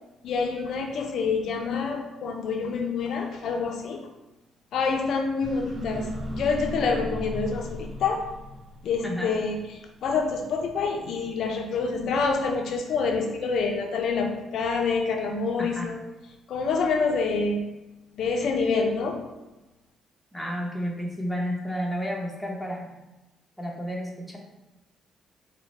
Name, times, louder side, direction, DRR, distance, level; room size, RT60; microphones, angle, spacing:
voice 1, 0.2-4.0 4.7-8.3 8.8-16.0 16.5-17.6 18.2-19.2, left 4 dB, 70° left, 4 dB, 0.3 m, -27 dB
sound 1, 5.4-9.4, equal, 35° right, 0.4 m, -36 dB
voice 2, 20.3-22.9 23.6-24.4, equal, 5° left, -2 dB, 0.7 m, -31 dB
3.9 x 2.0 x 3.0 m, 1.0 s
cardioid pair, 90°, 0 cm